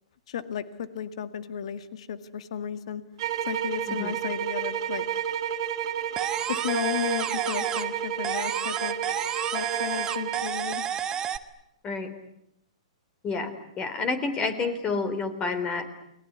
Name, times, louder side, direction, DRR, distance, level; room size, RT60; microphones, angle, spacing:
voice 1, 0.3-3.0 3.5-5.0 6.5-9.0 9.5-10.8, left 8 dB, 65° left, 12 dB, 2.0 m, -33 dB
sound 1, 3.2-10.5, right 9 dB, 55° right, 2.6 m, -31 dB
sound 2, 6.2-8.0 8.2-11.4, right 8 dB, 20° right, 1.5 m, -31 dB
voice 2, 13.2-15.9, left 4 dB, 25° left, 12 dB, 3.7 m, -29 dB
30.0 x 20.5 x 9.6 m, 0.82 s
hypercardioid pair, 125°, 3 cm